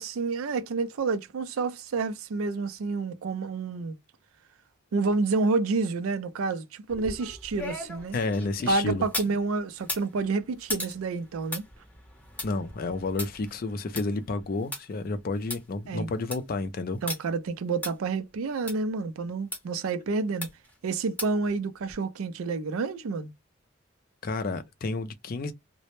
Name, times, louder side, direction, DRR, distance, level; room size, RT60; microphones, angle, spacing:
voice 1, 0.0-4.0 4.9-8.2 8.7-11.6 15.9-16.1 17.0-20.5 20.8-23.3, right 4 dB, 90° right, 0.4 m, -29 dB
sound 1, 6.9-9.4 9.8-14.8 15.2-15.3 15.5-15.6 16.0-16.5 17.1-17.2 17.8-17.9 18.7-18.8 19.5-19.6 20.4-20.7 21.2-21.5 21.9-22.0, left 2 dB, 10° left, 0.7 m, -37 dB
voice 2, 8.1-9.0 12.4-17.0 24.2-25.5, left 3 dB, 45° left, 0.4 m, -30 dB
2.0 x 2.0 x 2.9 m
head